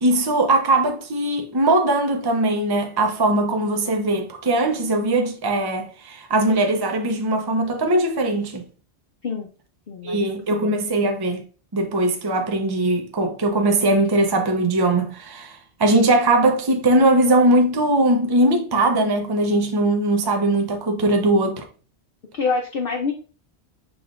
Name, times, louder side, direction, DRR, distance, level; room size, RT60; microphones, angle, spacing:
voice 1, 0.0-8.6 10.0-11.4 11.7-21.6, right 2 dB, 25° right, 0.6 m, -20 dB
voice 2, 9.9-10.7 22.3-23.1, left 4 dB, 60° left, 0.8 m, -26 dB
6.0 x 3.6 x 2.4 m
omnidirectional pair, 1.1 m